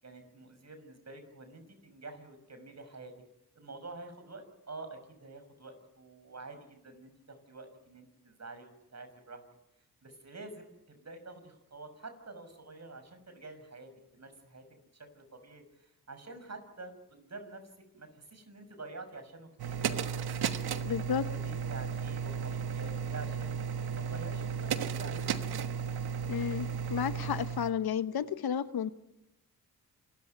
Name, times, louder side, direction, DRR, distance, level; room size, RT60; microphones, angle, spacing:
voice 1, 0.0-3.1 3.5-9.4 10.0-14.6 14.9-17.7 17.9-20.3 20.6-21.0 21.3-23.6 23.9-25.3, right 3 dB, 45° right, 8 dB, 6.4 m, -48 dB
sound 1, 19.6-27.7, right 7 dB, 75° right, 1.4 m, -34 dB
voice 2, 20.8-21.3 26.3-28.9, left 8 dB, 70° left, 13 dB, 1.1 m, -32 dB
27.0 x 13.5 x 9.4 m, 0.92 s
cardioid pair, 55°, 38 cm